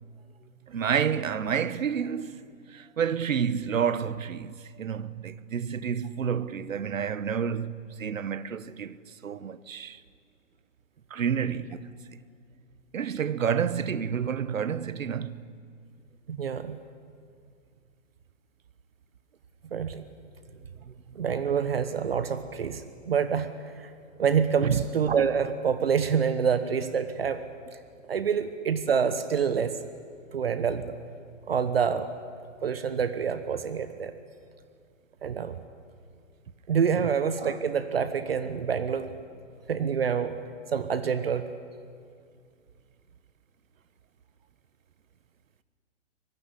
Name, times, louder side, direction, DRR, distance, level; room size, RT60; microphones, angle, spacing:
voice 1, 0.7-2.4 2.7-10.0 11.1-12.0 12.9-15.5 20.9-21.0 21.5-21.7 24.6-24.8 36.9-37.1, right 7 dB, 80° right, 1.3 m, -29 dB
voice 2, 16.3-16.8 19.7-20.0 21.1-23.9 24.2-27.4 28.1-29.8 30.3-30.9 31.5-32.1 32.6-34.1 35.2-35.5 36.7-39.1 39.7-40.3 40.7-41.5, right 7 dB, 50° right, 1.2 m, -27 dB
24.5 x 20.5 x 10.0 m
hypercardioid pair, 175°, 39 cm